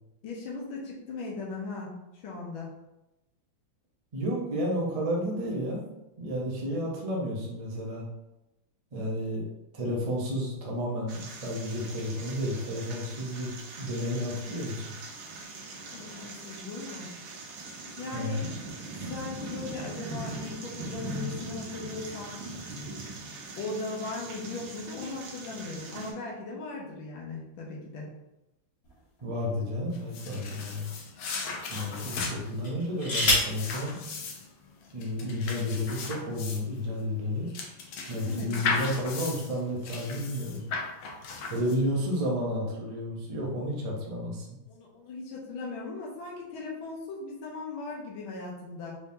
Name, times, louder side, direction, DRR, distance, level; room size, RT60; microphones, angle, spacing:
voice 1, 0.2-2.7 15.9-17.1 18.0-18.5 19.1-22.5 23.6-28.1 38.2-38.5 44.7-49.0, left 3 dB, 90° left, -3 dB, 1.7 m, -38 dB
voice 2, 4.1-5.9 6.2-8.1 8.9-9.4 9.7-14.8 18.1-18.5 29.2-30.9 31.7-34.0 34.9-37.5 38.1-40.6 41.5-44.4, equal, 65° right, -3 dB, 0.3 m, -31 dB
sound 1, 11.1-26.1, right 2 dB, 80° right, 1.6 m, -41 dB
sound 2, 28.8-30.1 30.8-30.9 32.6-33.6 34.8-34.9 35.2-35.6, left 1 dB, 50° left, 1.6 m, -29 dB
sound 3, 29.9-42.1, left 4 dB, 70° left, 1.2 m, -36 dB
4.5 x 3.5 x 2.7 m, 0.94 s
omnidirectional pair, 2.2 m